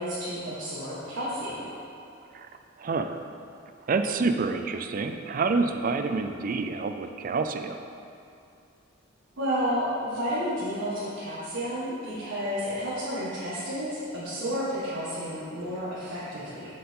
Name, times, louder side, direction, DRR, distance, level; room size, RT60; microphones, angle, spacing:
voice 1, 0.0-1.6 9.4-16.7, equal, 80° right, -10 dB, 1.7 m, -31 dB
voice 2, 2.8-3.2 3.9-7.8, right 4 dB, 45° right, 7 dB, 0.4 m, -28 dB
7.4 x 7.0 x 3.7 m, 2.6 s
head